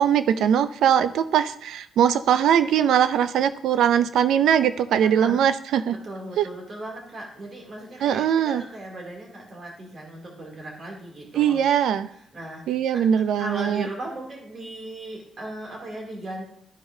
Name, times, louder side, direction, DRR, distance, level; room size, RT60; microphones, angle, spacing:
voice 1, 0.0-6.0 6.4-6.5 8.0-8.6 11.4-12.1 12.7-13.9, right 9 dB, 75° right, 13 dB, 0.4 m, -21 dB
voice 2, 6.0-11.6 12.3-12.6 12.9-13.0 13.4-16.4, right 1 dB, 40° right, -2 dB, 2.6 m, -37 dB
13.5 x 4.8 x 2.7 m, 0.70 s
cardioid pair, 90°, 0 cm